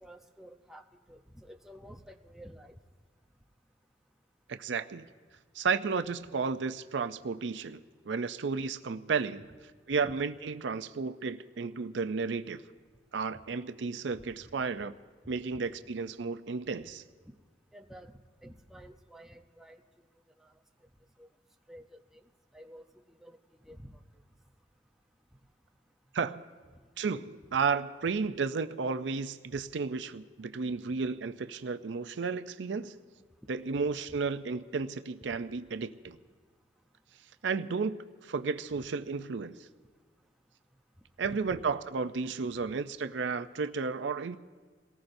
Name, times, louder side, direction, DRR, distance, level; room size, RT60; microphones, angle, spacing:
voice 1, 0.0-2.7 10.0-10.1 13.3-13.4 14.1-14.2 17.3-17.4 17.7-18.1 18.4-19.8 20.4-20.5 21.2-21.3 21.7-22.0 22.5-23.4 23.6-24.0 29.5-29.6 41.2-41.7, equal, ahead, 3 dB, 0.7 m, -50 dB
voice 2, 4.5-5.1 5.5-9.5 9.9-12.6 13.1-15.0 15.3-17.0 26.1-26.4 27.0-33.0 33.5-36.2 37.4-38.0 38.2-39.6 41.2-44.4, right 5 dB, 75° right, 10 dB, 0.5 m, -33 dB
28.0 x 18.5 x 2.7 m, 1.5 s
head